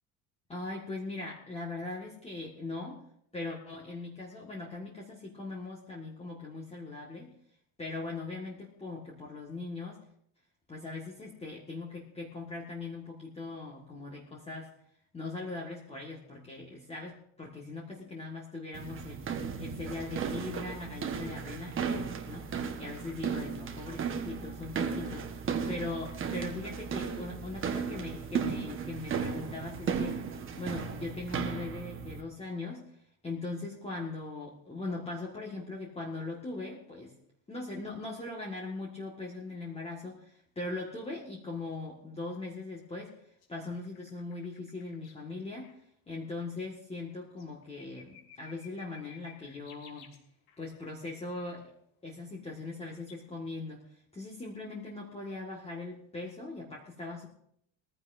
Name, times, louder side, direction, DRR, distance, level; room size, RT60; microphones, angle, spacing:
voice 1, 0.5-3.0 3.3-7.3 7.8-10.0 10.7-14.7 15.1-19.3 19.6-22.5 22.8-30.2 30.5-37.1 37.5-45.7 46.1-50.1 50.6-51.7 52.0-57.3, left 3 dB, 15° left, -3 dB, 1.8 m, -40 dB
sound 1, 18.7-32.2, right 6 dB, 25° right, 1.3 m, -35 dB
sound 2, 43.4-45.3 45.6-45.7 46.4-46.5 47.1-50.6 52.7-53.2, left 8 dB, 60° left, 3.0 m, -56 dB
21.5 x 15.0 x 2.7 m, 0.69 s
cardioid pair, 155°, 45 cm